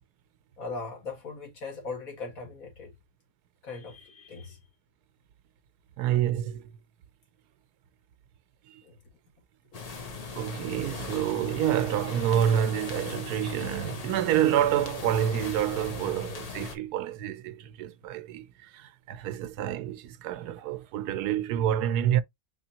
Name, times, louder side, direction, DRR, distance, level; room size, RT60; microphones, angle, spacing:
voice 1, 0.6-2.9 3.6-4.6 8.8-9.0, left 4 dB, 60° left, 2.2 m, -39 dB
voice 2, 6.0-6.7 10.3-22.2, right 10 dB, 85° right, 1.2 m, -28 dB
sound 1, 9.7-16.7, left 4 dB, 45° left, 0.5 m, -39 dB
4.9 x 3.7 x 2.8 m
omnidirectional pair, 1.6 m